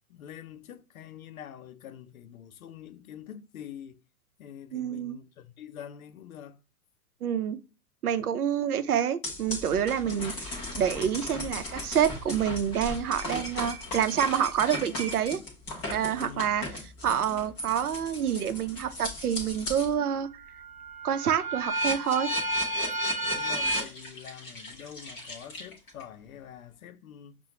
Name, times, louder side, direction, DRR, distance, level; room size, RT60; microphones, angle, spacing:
voice 1, 0.1-4.0 4.4-6.6 16.1-16.5 23.2-27.4, left 9 dB, 70° left, 0.6 m, -45 dB
voice 2, 4.7-5.2 7.2-7.6 8.0-15.4 15.9-16.7 17.0-20.3 21.0-22.3, right 9 dB, 80° right, 0.7 m, -27 dB
sound 1, 9.2-19.9 20.4-26.0, equal, 10° left, 0.3 m, -34 dB
5.5 x 2.2 x 2.8 m
figure-of-eight pair, 110°, 44 cm